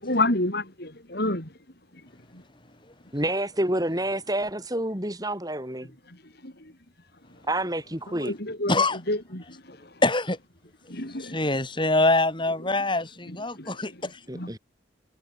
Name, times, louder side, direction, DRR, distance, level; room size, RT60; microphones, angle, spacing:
voice 1, 0.0-1.5 6.1-6.2 6.4-6.5 8.2-8.8 9.1-9.8 10.9-11.4 13.6-13.8 14.3-14.5, left 2 dB, 55° left, 5.8 m, -29 dB
voice 2, 3.1-5.9 7.5-8.3 14.3-14.6, right 1 dB, 20° right, 6.1 m, -28 dB
voice 3, 8.7-9.0 10.0-10.4 11.2-14.1, left 2 dB, 25° left, 5.1 m, -24 dB
head